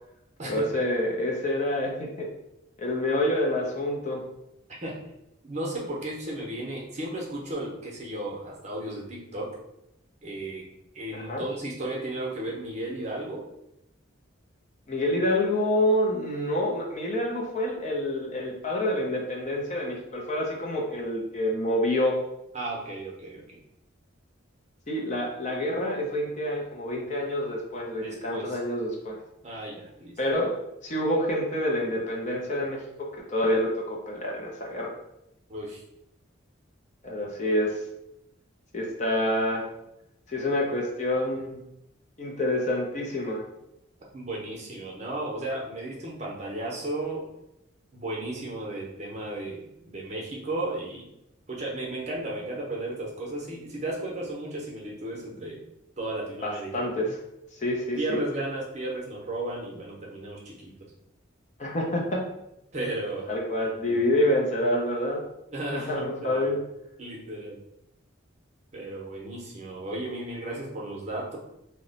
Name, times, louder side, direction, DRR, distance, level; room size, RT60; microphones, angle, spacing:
voice 1, 0.4-2.3 2.8-4.2 11.1-11.4 14.9-22.2 24.9-29.2 30.2-30.5 30.8-34.9 37.0-37.8 38.7-39.7 40.3-41.6 42.2-43.4 56.4-57.2 57.6-58.2 61.6-62.2 63.3-65.2 65.7-66.6, left 1 dB, 35° left, -1 dB, 0.5 m, -27 dB
voice 2, 5.4-9.5 10.2-10.6 10.9-13.4 22.5-23.6 28.0-28.6 29.4-30.2 35.5-35.8 44.1-47.2 47.9-51.1 51.5-55.6 56.0-57.0 58.0-60.7 62.7-63.3 63.7-64.0 65.5-66.5 67.0-67.6 68.7-71.4, right 1 dB, 35° right, -3 dB, 0.7 m, -34 dB
2.9 x 2.1 x 3.9 m, 0.84 s
head